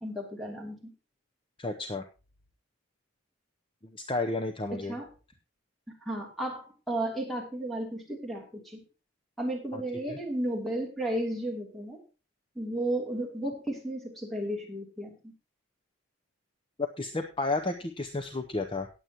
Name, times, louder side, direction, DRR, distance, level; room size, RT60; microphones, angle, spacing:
voice 1, 0.0-0.9 4.8-5.1 6.0-8.8 9.4-12.0 12.5-15.3, right 1 dB, ahead, 0 dB, 2.7 m, -33 dB
voice 2, 1.6-2.0 4.1-4.9 9.7-9.8 10.1-10.2 16.8-18.9, left 2 dB, 25° left, 6 dB, 0.7 m, -32 dB
18.5 x 7.9 x 2.9 m, 0.32 s
head